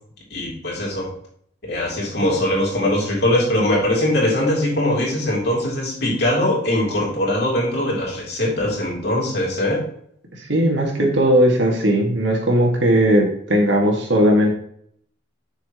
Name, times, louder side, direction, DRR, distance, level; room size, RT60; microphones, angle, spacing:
voice 1, 0.3-1.1 1.6-9.8, left 1 dB, 60° left, -3 dB, 3.3 m, -21 dB
voice 2, 10.5-14.5, equal, 75° right, 0 dB, 2.2 m, -17 dB
7.8 x 6.4 x 3.1 m, 0.66 s
head